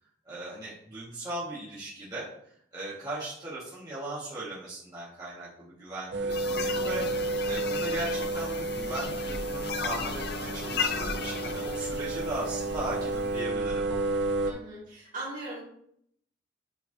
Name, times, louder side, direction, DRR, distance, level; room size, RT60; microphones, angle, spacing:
voice 1, 0.2-2.3 2.7-13.8, right 1 dB, 20° right, -9 dB, 1.7 m, -38 dB
sound 1, 6.1-14.5, right 2 dB, 65° right, 0.6 m, -31 dB
sound 2, 6.3-13.2, left 6 dB, 60° left, 0.5 m, -36 dB
voice 2, 14.4-15.6, right 2 dB, 45° right, -5 dB, 2.5 m, -39 dB
8.1 x 4.6 x 2.7 m, 0.68 s
head